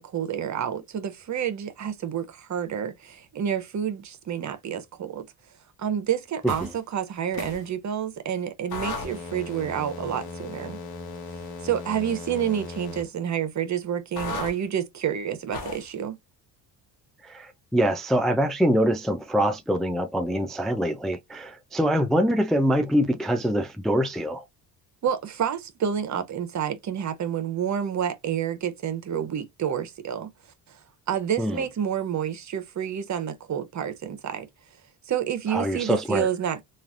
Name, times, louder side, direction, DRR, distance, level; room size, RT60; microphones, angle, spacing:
voice 1, 0.0-5.3 5.8-10.8 11.6-16.2 25.0-30.3 31.1-34.5 35.1-36.6, right 9 dB, 45° right, 0.8 m, -29 dB
sound 1, 6.4-6.8 7.3-7.7 8.7-13.1 14.1-14.5 15.5-15.9, left 3 dB, 60° left, 1.1 m, -36 dB
voice 2, 17.2-24.4 31.4-31.6 35.5-36.3, equal, ahead, 0.4 m, -24 dB
3.2 x 2.4 x 2.4 m
supercardioid pair, 75°, 41 cm